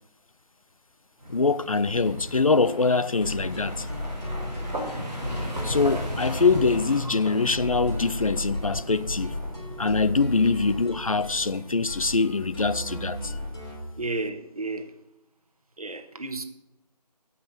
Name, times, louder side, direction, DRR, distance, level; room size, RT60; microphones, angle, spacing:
sound 1, 1.2-13.0, equal, 5° right, 2.8 m, -37 dB
voice 1, 1.3-3.9 5.6-9.3 9.8-13.3, left 4 dB, 55° left, 0.5 m, -24 dB
sound 2, 3.2-13.9, left 1 dB, 35° left, 3.5 m, -35 dB
voice 2, 14.0-14.9 15.8-16.4, right 3 dB, 60° right, 1.4 m, -32 dB
15.0 x 5.9 x 5.9 m
figure-of-eight pair, 175°, 21 cm